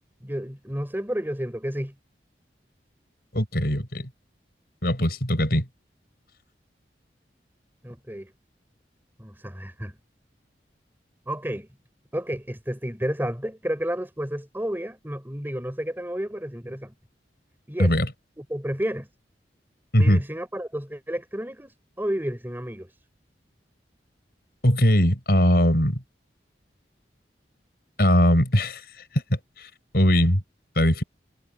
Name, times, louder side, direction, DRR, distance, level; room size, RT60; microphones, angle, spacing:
voice 1, 0.2-1.9 7.8-8.3 9.2-10.0 11.3-11.7 12.1-16.9 17.7-17.9 18.4-19.1 20.0-22.9, equal, 10° right, 3.8 m, -31 dB
voice 2, 3.3-4.1 4.8-5.6 17.8-18.1 19.9-20.2 24.6-26.0 28.0-28.8 29.6-30.4 30.8-31.0, equal, 60° left, 6.7 m, -20 dB
head